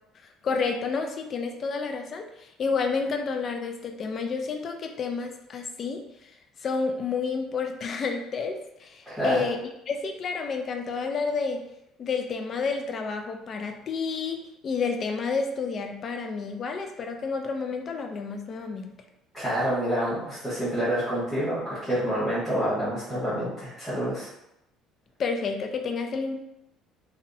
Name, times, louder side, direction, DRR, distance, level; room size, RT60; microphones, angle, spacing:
voice 1, 0.4-6.3 6.6-9.6 9.9-11.6 12.0-19.0 25.2-26.3, left 5 dB, 40° left, 4 dB, 0.3 m, -30 dB
voice 2, 9.1-9.4 19.3-24.3, equal, 5° left, -13 dB, 1.1 m, -27 dB
2.6 x 2.0 x 2.5 m, 0.83 s
cardioid pair, 135°, 0 cm